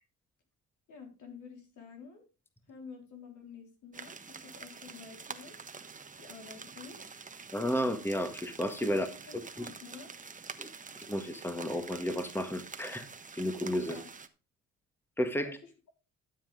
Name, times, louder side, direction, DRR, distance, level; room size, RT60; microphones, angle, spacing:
voice 1, 0.9-2.2 2.7-5.6 6.2-7.2 8.9-10.1 13.8-14.1 15.4-15.5, left 5 dB, 80° left, 3 dB, 4.1 m, -49 dB
sound 1, 3.9-14.3, right 5 dB, 25° right, 1.2 m, -47 dB
voice 2, 7.5-9.1 9.6-9.7 10.6-10.7 11.1-13.1 13.3-14.0 15.2-15.6, equal, 5° left, 8 dB, 1.6 m, -32 dB
13.0 x 7.5 x 3.6 m, 0.32 s
cardioid pair, 90°, 30 cm